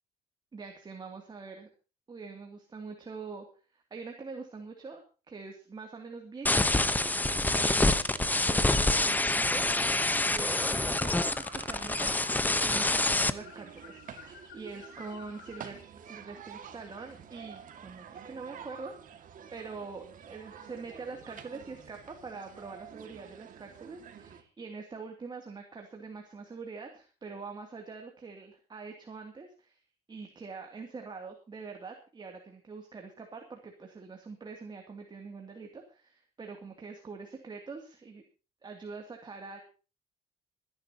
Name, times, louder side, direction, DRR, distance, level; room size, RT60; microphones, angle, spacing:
voice 1, 0.5-1.7 2.1-3.5 3.7-6.9 7.5-10.0 10.3-14.0 14.5-15.8 16.0-29.8 30.1-38.2 38.6-39.6, right 4 dB, 25° right, 3 dB, 2.6 m, -44 dB
sound 1, 6.5-13.3, left 2 dB, 10° left, 0.9 m, -26 dB
sound 2, 6.8-24.4, right 8 dB, 50° right, 2.1 m, -49 dB
sound 3, 10.5-15.8, left 8 dB, 80° left, 5.6 m, -50 dB
26.5 x 10.5 x 2.9 m, 0.34 s
cardioid pair, 110°, 17 cm